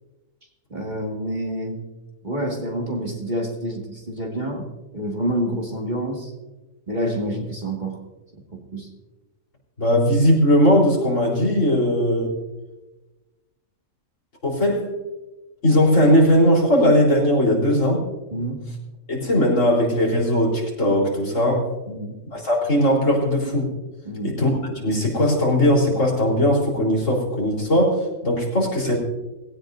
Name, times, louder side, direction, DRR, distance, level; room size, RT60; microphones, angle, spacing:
voice 1, 0.7-1.8 2.2-4.7 4.9-6.3 6.9-8.0 8.5-8.9 18.3-18.6 21.9-22.1 24.1-24.4, right 1 dB, 30° right, 0 dB, 2.2 m, -28 dB
voice 2, 9.8-12.4 14.4-14.9 15.6-18.1 19.1-21.7 22.3-23.7 24.2-29.0, equal, 65° left, -4 dB, 4.4 m, -19 dB
19.0 x 17.0 x 2.7 m, 1.1 s
omnidirectional pair, 1.5 m